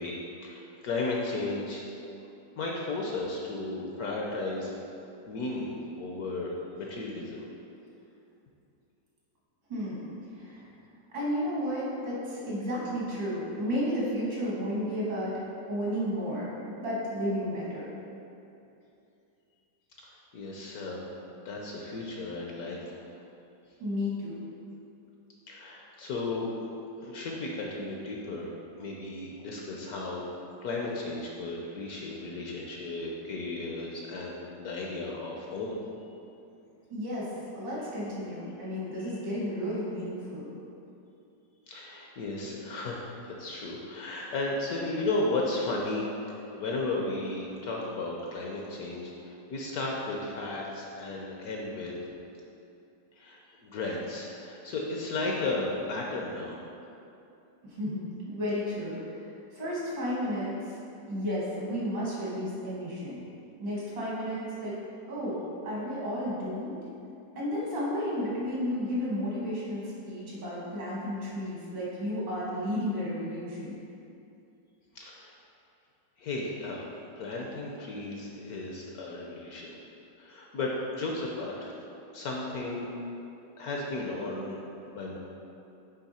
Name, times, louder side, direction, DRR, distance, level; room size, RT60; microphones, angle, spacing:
voice 1, 0.0-1.8 2.6-4.7 5.3-7.5 20.0-21.0 21.3-23.1 25.5-26.5 27.0-28.5 28.8-30.2 30.6-35.8 39.0-39.1 41.7-46.1 46.4-51.9 53.2-56.6 74.9-75.3 76.2-79.7 80.2-81.7 82.1-82.9 83.6-84.6 84.9-85.2, left 2 dB, 65° left, -2 dB, 1.0 m, -34 dB
voice 2, 9.7-10.7 11.1-15.3 15.7-17.9 23.8-24.4 36.9-37.3 37.5-40.5 57.6-59.2 59.5-60.8 61.1-63.2 63.6-64.8 65.1-65.4 65.6-66.8 67.4-73.8, equal, 75° right, -7 dB, 2.4 m, -32 dB
8.2 x 3.4 x 4.2 m, 2.7 s
omnidirectional pair, 2.0 m